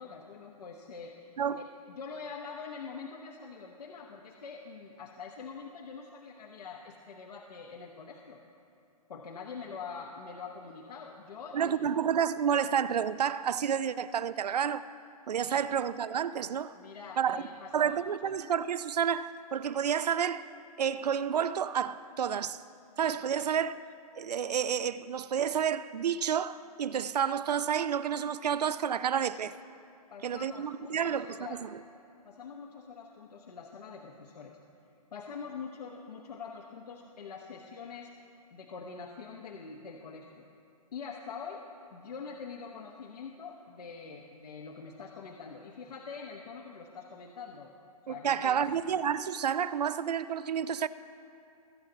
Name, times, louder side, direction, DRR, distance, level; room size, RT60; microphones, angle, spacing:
voice 1, 0.0-8.4 9.1-11.8 15.6-15.7 16.7-18.0 30.1-31.6 32.2-34.6 35.1-38.1 38.5-40.5 40.9-41.6 41.9-47.7 48.1-48.6, left 5 dB, 75° left, 1.0 m, -44 dB
voice 2, 11.5-14.9 15.3-16.7 17.2-17.4 17.7-20.5 20.8-22.6 23.0-23.7 24.2-29.6 30.2-31.7 48.1-50.9, right 8 dB, 85° right, 0.5 m, -30 dB
20.0 x 8.3 x 4.0 m
hypercardioid pair, 155°, 20 cm